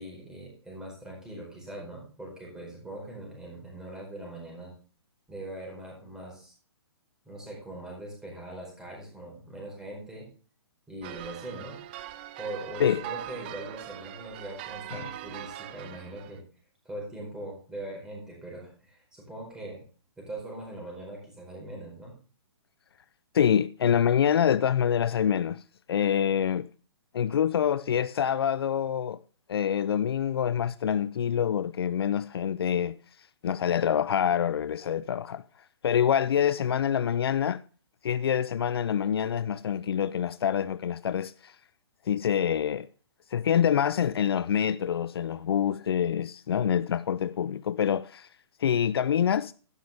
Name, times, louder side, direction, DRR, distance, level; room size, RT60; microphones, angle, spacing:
voice 1, 0.0-4.7 5.3-6.5 7.2-10.3 10.9-11.8 12.4-16.4 16.8-19.8 20.2-22.1, right 1 dB, 5° right, 4.7 m, -41 dB
sound 1, 11.0-16.4, right 13 dB, 25° right, 0.5 m, -41 dB
voice 2, 23.3-25.6 25.9-26.7 27.1-29.2 29.5-33.0 33.4-35.4 35.8-37.6 38.0-41.5 42.1-42.9 43.3-48.3 48.6-49.5, left 9 dB, 65° left, 0.5 m, -26 dB
12.0 x 10.5 x 3.5 m
hypercardioid pair, 160°, 14 cm